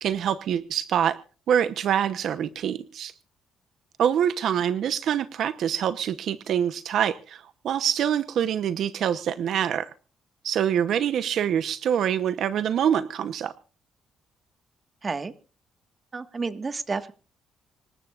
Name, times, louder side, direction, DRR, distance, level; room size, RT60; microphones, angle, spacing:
voice 1, 0.0-1.2 1.5-3.1 4.0-9.9 10.4-13.5, right 9 dB, 70° right, 12 dB, 0.9 m, -25 dB
voice 2, 15.0-15.3 16.1-17.1, right 4 dB, 35° right, 10 dB, 1.6 m, -30 dB
26.0 x 14.0 x 2.5 m, 0.37 s
cardioid pair, 90°, 0 cm